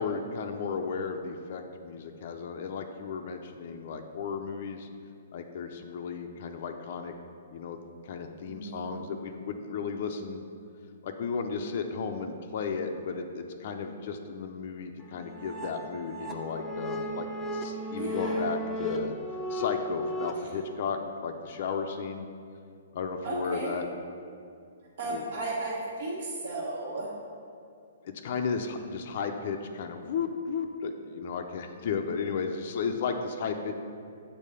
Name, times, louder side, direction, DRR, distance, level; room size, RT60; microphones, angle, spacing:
voice 1, 0.0-4.9 5.3-7.1 7.5-7.8 8.0-10.4 11.0-17.3 17.5-19.1 19.5-22.3 22.9-23.9 25.1-25.2 28.0-33.7, left 5 dB, 50° left, 5 dB, 0.5 m, -34 dB
voice 2, 8.4-9.0 17.9-18.5 23.2-23.8 25.0-27.1, right 2 dB, 55° right, -6 dB, 1.4 m, -34 dB
sound 1, 15.0-20.3, equal, 10° left, 0.6 m, -35 dB
7.4 x 4.5 x 6.7 m, 2.3 s
hypercardioid pair, 160°, 0 cm